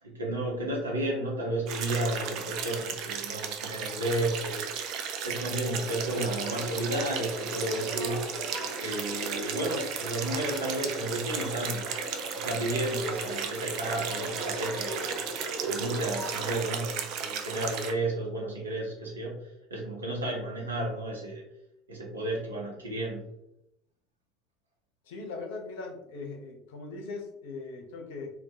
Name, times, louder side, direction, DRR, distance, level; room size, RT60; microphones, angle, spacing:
voice 1, 0.0-4.7 5.2-8.3 8.7-11.9 12.4-15.2 15.6-19.4 19.7-21.4 21.9-23.2, right 1 dB, 85° right, -2 dB, 0.7 m, -32 dB
sound 1, 1.7-17.9, right 7 dB, 55° right, 0.3 m, -35 dB
sound 2, 6.0-16.6, right 1 dB, 5° left, 0.9 m, -39 dB
voice 2, 25.1-28.3, left 3 dB, 70° left, 1 dB, 0.5 m, -40 dB
2.2 x 2.1 x 2.7 m, 0.79 s
hypercardioid pair, 75°, 0 cm